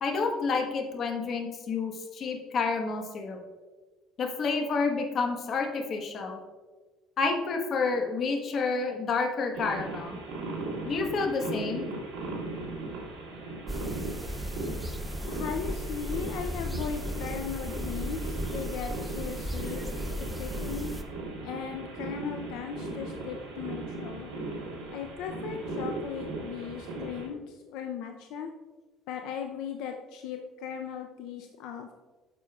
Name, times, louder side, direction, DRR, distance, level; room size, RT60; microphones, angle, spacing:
voice 1, 0.0-3.4 4.2-6.4 7.2-10.2 10.8-11.9, left 4 dB, 45° left, 3 dB, 1.2 m, -29 dB
sound 1, 9.5-27.3, right 2 dB, 80° right, 1.9 m, -38 dB
sound 2, 13.7-21.0, equal, 5° right, 0.6 m, -36 dB
voice 2, 15.3-19.9 20.4-20.9 21.4-24.3 24.9-28.5 29.1-31.9, left 7 dB, 80° left, 4 dB, 0.5 m, -37 dB
9.3 x 6.7 x 2.4 m, 1.3 s
cardioid pair, 125°, 0 cm